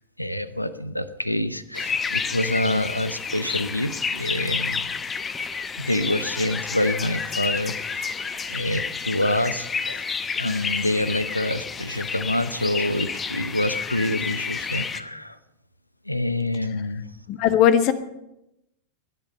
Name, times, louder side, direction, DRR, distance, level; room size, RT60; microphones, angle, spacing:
voice 1, 0.2-4.9 5.8-8.2 8.5-10.0 10.4-15.4 16.1-17.1, left 1 dB, 85° left, 14 dB, 0.8 m, -26 dB
sound 1, 1.7-15.0, left 5 dB, 20° left, 0.9 m, -30 dB
voice 2, 17.3-17.9, left 10 dB, 40° left, 12 dB, 1.2 m, -18 dB
19.5 x 11.0 x 5.6 m, 0.88 s
figure-of-eight pair, 90°, 0 cm